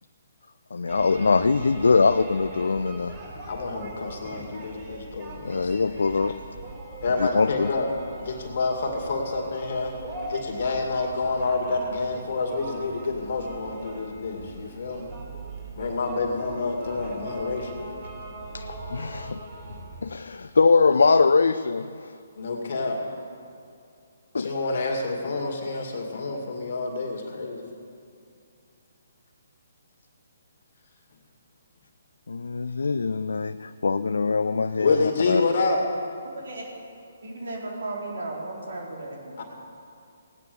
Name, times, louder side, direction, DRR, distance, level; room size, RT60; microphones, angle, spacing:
voice 1, 0.7-3.1 5.4-6.3 7.2-7.7 18.5-19.4 20.0-22.2 24.3-24.5 32.3-35.4, left 4 dB, 80° left, 10 dB, 0.4 m, -22 dB
sound 1, 0.9-20.0, right 2 dB, 25° right, 4.2 m, -40 dB
voice 2, 3.5-6.0 7.0-7.9 8.2-9.9 10.3-15.2 15.8-17.7 22.4-23.0 24.4-27.6 34.8-35.9 39.4-39.5, left 3 dB, 55° left, 1 dB, 2.3 m, -28 dB
voice 3, 36.2-36.7 37.2-39.3, right 2 dB, 75° right, -1 dB, 4.0 m, -35 dB
17.5 x 9.5 x 6.9 m, 2.4 s
hypercardioid pair, 145°, 0 cm